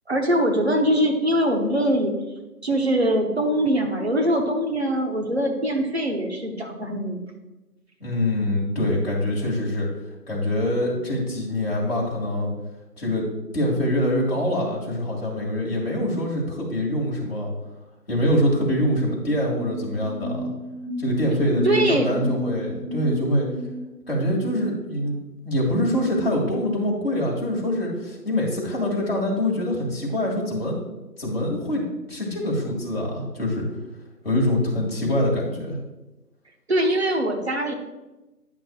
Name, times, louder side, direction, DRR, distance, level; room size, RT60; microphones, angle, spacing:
voice 1, 0.1-2.1 2.6-7.2 21.6-22.3 36.7-37.7, right 1 dB, 40° right, 2 dB, 0.9 m, -22 dB
voice 2, 8.0-9.9 10.3-12.5 13.0-13.3 13.5-17.5 18.1-20.5 21.0-23.5 24.1-25.2 25.4-30.8 31.2-31.8 32.1-33.7 34.2-35.8, left 1 dB, 40° left, -3 dB, 2.0 m, -24 dB
sound 1, 18.7-24.4, equal, 20° left, 1.1 m, -33 dB
10.0 x 5.9 x 2.3 m, 1.1 s
figure-of-eight pair, 170°, 47 cm